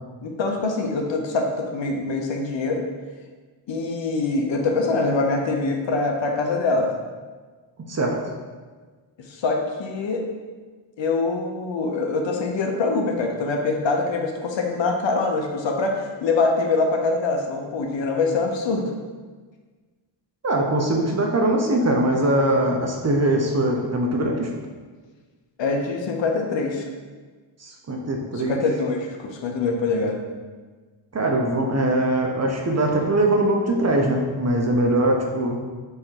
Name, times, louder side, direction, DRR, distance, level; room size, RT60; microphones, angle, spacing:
voice 1, 0.2-2.8 3.7-6.9 9.3-10.2 11.0-18.9 25.6-26.9 28.5-30.2, left 3 dB, 60° left, 2 dB, 0.8 m, -24 dB
voice 2, 7.9-8.2 20.4-24.5 27.6-28.6 31.1-35.6, right 1 dB, 30° right, 1 dB, 0.7 m, -22 dB
3.6 x 3.3 x 4.5 m, 1.4 s
cardioid pair, 75°, 50 cm